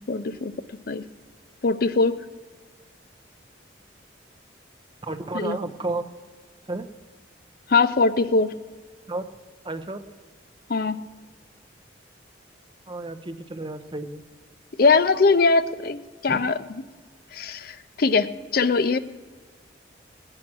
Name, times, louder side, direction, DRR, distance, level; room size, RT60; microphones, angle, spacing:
voice 1, 0.1-0.5 0.9-1.1 1.6-2.1 5.3-5.6 7.7-8.6 10.7-11.0 14.8-16.6 17.3-19.0, left 4 dB, 50° left, 13 dB, 0.5 m, -21 dB
voice 2, 5.0-6.1 6.7-6.8 9.1-9.3 9.6-10.0 12.9-14.2 16.3-16.4, right 2 dB, 25° right, 9 dB, 0.7 m, -32 dB
20.0 x 8.7 x 6.1 m, 1.5 s
head